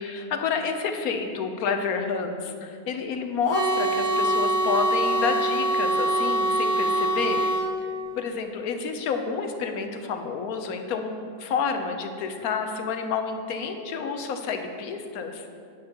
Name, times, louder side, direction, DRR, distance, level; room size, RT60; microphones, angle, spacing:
voice 1, 0.0-7.5 8.2-15.5, left 5 dB, 70° left, 6 dB, 1.1 m, -29 dB
sound 1, 3.5-7.7, right 1 dB, 20° right, 0.4 m, -24 dB
10.0 x 9.5 x 2.9 m, 2.4 s
omnidirectional pair, 1.7 m